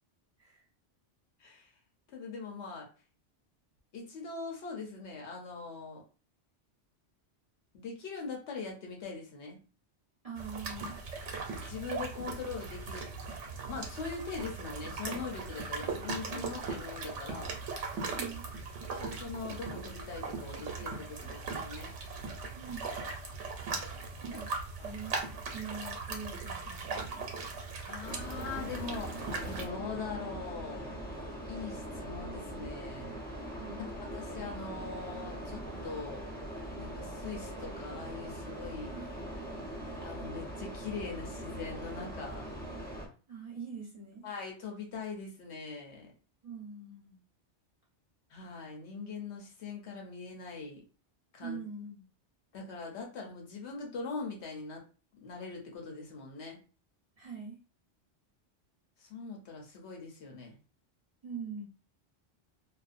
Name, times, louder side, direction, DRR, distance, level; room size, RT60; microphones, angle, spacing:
voice 1, 1.4-1.7 2.1-2.9 3.9-6.0 7.7-9.6 11.7-13.0 13.7-17.5 18.9-21.9 24.3-24.4 24.8-24.9 27.8-29.1 29.4-30.9 31.5-33.2 33.8-36.2 36.7-38.9 40.0-42.5 44.2-46.1 48.3-50.8 51.3-51.6 52.5-54.8 55.2-56.6 59.0-60.6, left 4 dB, 70° left, 1 dB, 0.9 m, -42 dB
voice 2, 10.2-11.0 18.1-18.5 22.5-22.9 24.2-24.5 24.8-27.4 33.6-33.8 38.9-39.8 43.3-44.3 46.4-47.2 51.4-52.0 57.1-57.6 61.2-61.7, right 5 dB, 35° right, -5 dB, 0.8 m, -44 dB
sound 1, 10.4-29.6, right 4 dB, 85° right, 1.0 m, -39 dB
sound 2, 28.0-43.1, right 1 dB, 15° left, 0.3 m, -41 dB
2.4 x 2.0 x 2.4 m, 0.36 s
omnidirectional pair, 1.2 m